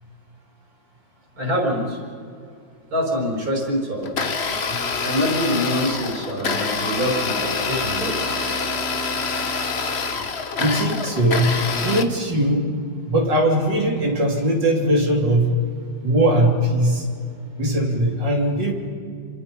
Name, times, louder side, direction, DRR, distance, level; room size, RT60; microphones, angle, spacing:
voice 1, 1.4-2.0 2.9-4.3 5.0-8.2, equal, 50° right, 0 dB, 5.8 m, -25 dB
Domestic sounds home sounds, 4.0-12.0, left 4 dB, 40° left, 1.3 m, -26 dB
voice 2, 10.6-11.6 11.8-12.7 13.1-15.6 16.0-17.1 17.6-18.7, right 1 dB, 70° right, 0 dB, 3.8 m, -20 dB
28.5 x 26.0 x 5.5 m, 2.3 s
omnidirectional pair, 2.0 m